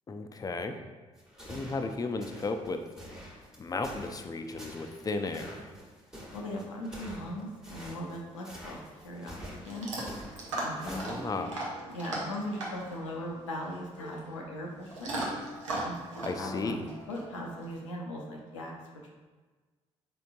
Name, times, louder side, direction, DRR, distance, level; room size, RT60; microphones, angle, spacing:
voice 1, 0.1-0.7 1.5-2.8 3.6-5.7 10.9-11.7 16.2-16.8, left 3 dB, 25° left, 6 dB, 0.4 m, -34 dB
sound 1, 1.2-11.5, equal, 5° right, 1.1 m, -47 dB
voice 2, 6.3-9.9 10.6-11.5 11.9-15.2 15.8-15.9 16.4-18.7 19.0-19.1, left 1 dB, 85° left, 0 dB, 0.5 m, -39 dB
Chewing mastication / Dog, 8.6-17.8, right 1 dB, 85° right, 0.6 m, -39 dB
4.3 x 3.8 x 2.5 m, 1.3 s
figure-of-eight pair, 45°, 15 cm